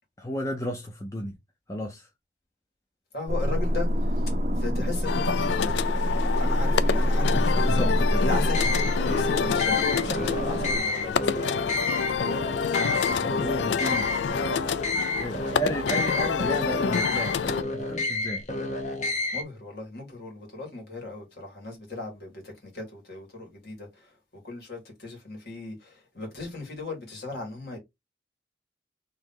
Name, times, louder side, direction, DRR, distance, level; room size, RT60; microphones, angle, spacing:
voice 1, 0.2-1.4 1.7-2.1 7.2-8.2 12.8-14.1 15.0-17.4 17.7-18.4, equal, 15° left, 0.6 m, -33 dB
voice 2, 3.1-3.9 4.6-5.7 6.3-7.9 8.2-11.7 19.3-23.9 24.4-27.8, left 3 dB, 60° left, 2.1 m, -37 dB
sound 1, 3.3-10.8, equal, 40° right, 0.5 m, -26 dB
sound 2, 5.1-17.6, left 6 dB, 85° left, 0.4 m, -28 dB
sound 3, 8.5-19.4, left 2 dB, 40° left, 0.9 m, -30 dB
3.4 x 2.9 x 3.8 m
head